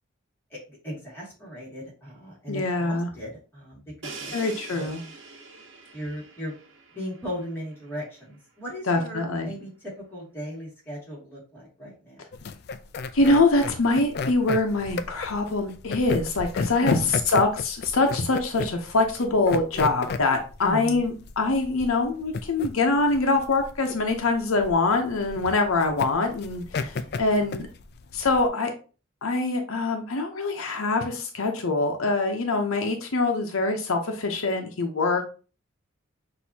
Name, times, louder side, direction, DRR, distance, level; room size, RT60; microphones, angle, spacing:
voice 1, 0.5-4.9 5.9-6.5 6.9-12.2 16.8-17.1 20.6-21.1 26.8-27.5, equal, 10° left, -6 dB, 2.2 m, -38 dB
voice 2, 2.5-3.1 4.3-5.0 8.9-9.5 13.1-16.9 17.3-27.7 28.1-28.7 29.2-35.2, left 3 dB, 80° left, 4 dB, 0.8 m, -24 dB
Crash cymbal, 4.0-7.8, right 4 dB, 65° right, 1.0 m, -43 dB
sound 1, 12.3-28.5, left 4 dB, 50° left, 0.3 m, -33 dB
6.1 x 2.7 x 2.8 m, 0.36 s
head